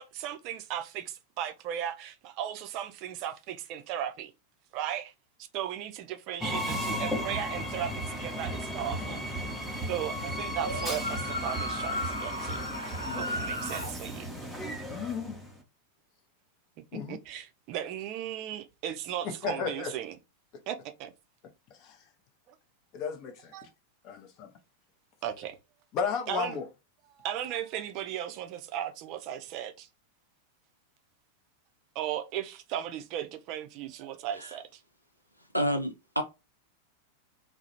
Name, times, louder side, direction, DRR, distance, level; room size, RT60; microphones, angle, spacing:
voice 1, 0.0-4.3 4.7-5.1 5.5-9.2 9.9-12.6 13.1-14.3 17.1-20.2 20.7-21.1 23.5-23.7 25.2-25.6 26.3-26.6 27.2-29.9 32.0-34.8, right 10 dB, 40° right, 0.4 m, -36 dB
Train, 6.4-15.6, equal, 5° left, 0.6 m, -36 dB
Applause, 7.7-14.4, right 2 dB, 15° right, 1.0 m, -42 dB
sound 1, 10.5-13.9, left 1 dB, 90° right, 0.6 m, -35 dB
voice 2, 14.9-15.4 16.9-17.2 19.2-19.9 21.7-22.0 22.9-23.5 24.0-24.5 25.9-26.7, left 6 dB, 40° left, 0.6 m, -34 dB
voice 3, 35.5-36.2, equal, 90° left, 0.4 m, -29 dB
2.4 x 2.0 x 2.8 m
figure-of-eight pair, 90°, 0 cm